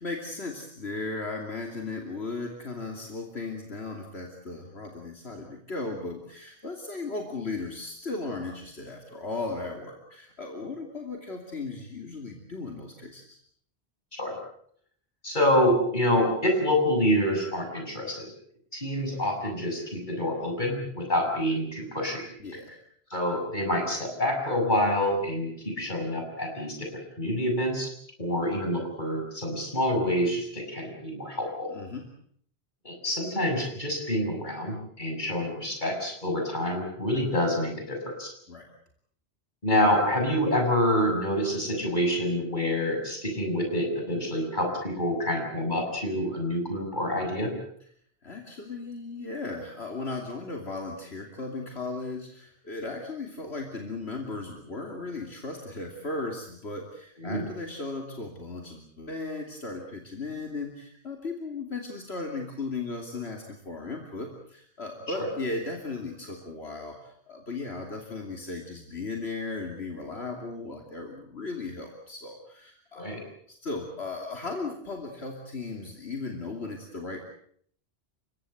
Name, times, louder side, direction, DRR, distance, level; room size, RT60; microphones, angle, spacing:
voice 1, 0.0-13.4 22.4-22.7 31.7-32.1 38.5-38.7 48.2-73.2 73.5-77.2, left 3 dB, 75° left, 2 dB, 3.1 m, -36 dB
voice 2, 15.2-18.3 18.7-22.2 23.1-26.9 27.2-27.9 28.2-31.7 32.8-38.3 39.6-47.5 57.2-57.5 65.1-65.3 73.0-73.2, left 1 dB, 45° left, 2 dB, 7.1 m, -27 dB
30.0 x 17.0 x 7.9 m, 0.64 s
omnidirectional pair, 1.1 m